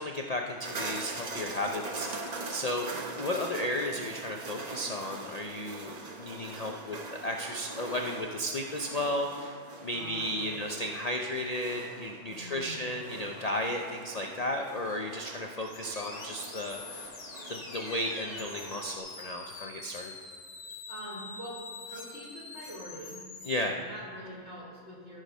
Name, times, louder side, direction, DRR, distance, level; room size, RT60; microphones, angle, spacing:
voice 1, 0.0-9.6 9.8-17.1 17.5-20.1 23.4-23.8, left 1 dB, 45° left, 2 dB, 0.5 m, -34 dB
sound 1, 0.6-19.0, right 3 dB, 35° right, 0.8 m, -42 dB
voice 2, 9.8-10.5 12.3-12.9 20.9-23.2 23.6-25.2, equal, 55° right, -7 dB, 3.4 m, -44 dB
sound 2, 15.6-23.6, left 4 dB, 70° left, 1.5 m, -45 dB
14.0 x 4.9 x 5.4 m, 2.3 s
omnidirectional pair, 1.4 m